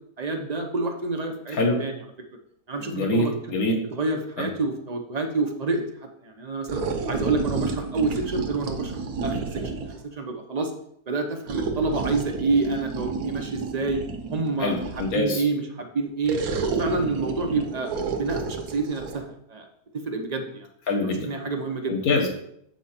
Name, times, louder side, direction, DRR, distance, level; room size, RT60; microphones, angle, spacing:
voice 1, 0.2-1.9 2.7-3.3 3.9-5.8 6.2-6.8 7.1-10.7 11.1-14.0 14.3-16.4 16.8-17.9 18.2-19.7 19.9-20.7 21.0-22.0, right 3 dB, 50° right, 4 dB, 0.5 m, -28 dB
voice 2, 2.8-3.8 4.4-4.5 14.6-15.4 17.0-17.1 20.9-21.3 21.9-22.3, left 2 dB, 65° left, 1 dB, 1.6 m, -25 dB
sound 1, 6.7-10.0 11.5-15.3 16.2-19.2, right 4 dB, 70° right, 1.2 m, -30 dB
7.5 x 4.6 x 4.2 m, 0.70 s
omnidirectional pair, 1.7 m